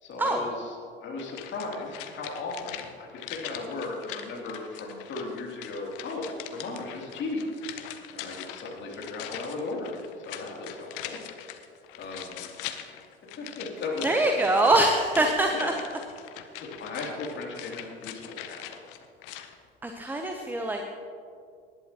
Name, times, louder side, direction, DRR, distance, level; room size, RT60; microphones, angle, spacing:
voice 1, 0.0-7.5 8.1-10.0 10.2-11.2 11.9-12.5 12.8-13.0 13.4-14.4 15.5-15.8 16.6-18.8, left 3 dB, 40° left, -2 dB, 3.0 m, -36 dB
sound 1, 1.2-19.6 19.8-19.9, left 11 dB, 60° left, 0.9 m, -42 dB
voice 2, 14.0-15.7 19.8-20.8, right 2 dB, 5° right, 4 dB, 0.8 m, -24 dB
19.5 x 11.0 x 3.0 m, 2.3 s
figure-of-eight pair, 70°, 30 cm